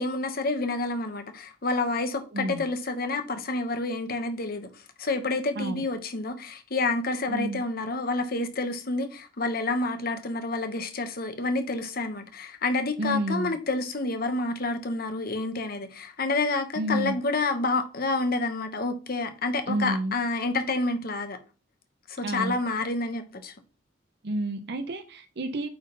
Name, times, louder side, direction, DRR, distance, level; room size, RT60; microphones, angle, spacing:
voice 1, 0.0-4.7 5.0-21.4 22.1-23.5, left 3 dB, 50° left, 1.1 m, -29 dB
voice 2, 7.3-7.6 13.0-13.5 16.8-17.2 19.7-20.2 22.2-22.6 24.2-25.7, right 1 dB, 60° right, 0.7 m, -30 dB
8.8 x 3.7 x 3.9 m
head